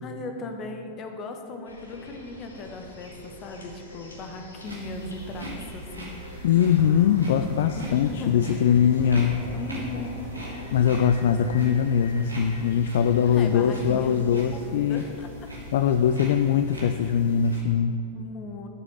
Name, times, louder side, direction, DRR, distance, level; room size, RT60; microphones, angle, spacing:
voice 1, 0.0-6.2 7.8-8.7 9.5-10.3 13.2-15.5 18.1-18.7, left 2 dB, 30° left, 5 dB, 1.4 m, -38 dB
sound 1, 1.6-14.6, left 2 dB, 75° left, 1.8 m, -45 dB
sound 2, 4.6-17.6, right 1 dB, 85° right, 2.8 m, -40 dB
voice 2, 6.4-9.4 10.7-15.0 15.7-18.0, left 8 dB, 55° left, 8 dB, 0.4 m, -22 dB
sound 3, 6.8-6.9 7.1-7.2 7.4-7.7 8.1-8.3 8.7-9.0 9.4-9.5 9.7-9.8 10.1-10.3 10.7-11.0 11.4-11.6, right 2 dB, 10° left, 3.0 m, -41 dB
12.0 x 7.1 x 6.7 m, 2.4 s
figure-of-eight pair, 90°, 0 cm